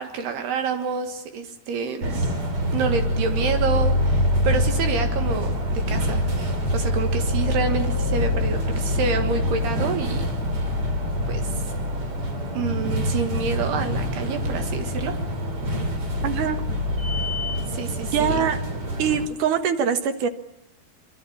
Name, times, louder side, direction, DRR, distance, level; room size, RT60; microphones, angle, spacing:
voice 1, 0.0-2.2 2.7-6.2 6.7-10.3 11.3-11.6 12.6-15.1 17.7-18.5, right 5 dB, 80° right, 6 dB, 3.7 m, -28 dB
sound 1, 2.0-19.3, left 1 dB, 35° right, 3.9 m, -25 dB
voice 2, 16.2-16.6 18.1-18.6 19.0-20.3, right 7 dB, 60° right, 9 dB, 2.6 m, -23 dB
25.5 x 25.0 x 8.7 m, 0.89 s
omnidirectional pair, 4.6 m